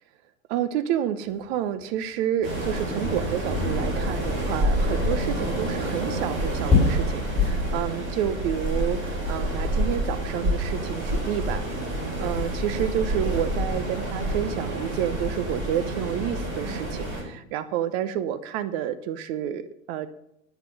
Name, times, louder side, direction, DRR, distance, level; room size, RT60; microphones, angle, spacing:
voice 1, 0.5-11.6 12.2-20.1, right 10 dB, 50° right, 13 dB, 1.0 m, -29 dB
sound 1, 1.2-7.7, left 3 dB, 15° left, 5.7 m, -29 dB
Waves surf, 2.4-17.2, right 1 dB, 30° right, 5.5 m, -28 dB
13.5 x 6.1 x 7.9 m, 0.80 s
hypercardioid pair, 100°, 41 cm